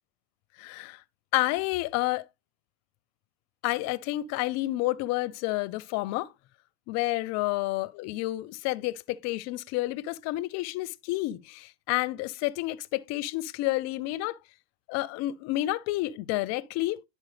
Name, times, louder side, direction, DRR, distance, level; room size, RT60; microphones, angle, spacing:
voice 1, 0.6-1.0 1.3-2.3 3.6-6.3 6.9-14.4 14.9-17.0, left 18 dB, 50° left, 0.5 m, -30 dB
10.5 x 4.5 x 3.2 m
supercardioid pair, 115°, 34 cm